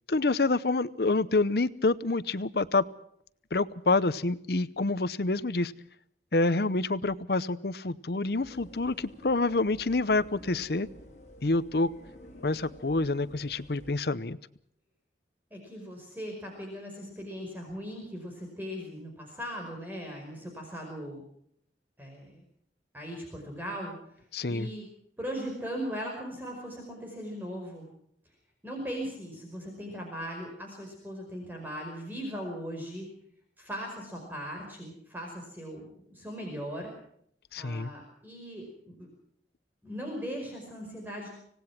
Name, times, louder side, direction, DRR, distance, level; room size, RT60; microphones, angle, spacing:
voice 1, 0.1-2.8 3.5-5.7 6.3-10.9 11.4-11.9 12.4-14.4 24.3-24.7 37.5-37.9, left 3 dB, 60° left, 16 dB, 0.8 m, -27 dB
sound 1, 8.3-13.9, equal, 40° left, 6.5 m, -51 dB
voice 2, 15.5-21.2 22.0-22.4 22.9-24.9 25.2-27.9 28.6-33.1 33.6-36.9 37.6-39.1 39.8-41.3, equal, 10° right, 1 dB, 5.2 m, -39 dB
26.0 x 18.5 x 6.0 m, 0.69 s
head